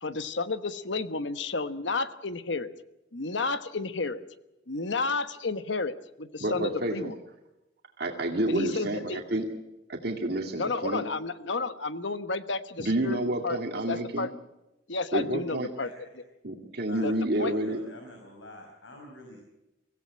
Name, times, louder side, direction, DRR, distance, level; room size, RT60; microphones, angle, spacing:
voice 1, 0.0-2.7 3.1-4.2 4.7-7.1 8.5-9.2 10.5-13.6 13.9-14.3 14.9-15.9 17.0-17.1 17.4-17.5, left 3 dB, 70° left, 12 dB, 1.2 m, -31 dB
voice 2, 6.4-7.1 8.0-9.5 9.9-11.0 12.8-14.3 15.1-15.7 16.4-17.8, right 1 dB, 55° right, 2 dB, 2.3 m, -29 dB
voice 3, 17.4-19.4, left 1 dB, 85° left, 2 dB, 5.2 m, -47 dB
24.0 x 16.5 x 8.7 m, 0.96 s
head